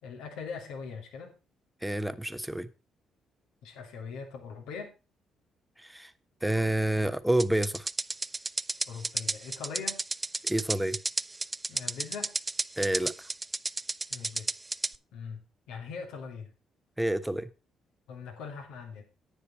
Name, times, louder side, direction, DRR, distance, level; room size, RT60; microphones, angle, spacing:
voice 1, 0.0-1.3 3.6-4.9 8.9-10.0 11.7-12.3 14.1-14.5 15.1-15.4 15.7-16.5 18.1-19.0, left 5 dB, 80° left, 2.9 m, -41 dB
voice 2, 1.8-2.7 5.8-6.1 6.4-7.9 10.4-11.0 12.8-13.1 17.0-17.5, right 1 dB, 5° right, 1.2 m, -28 dB
sound 1, 7.4-14.9, right 3 dB, 25° right, 0.5 m, -32 dB
10.5 x 9.7 x 4.4 m
hypercardioid pair, 50°, 0 cm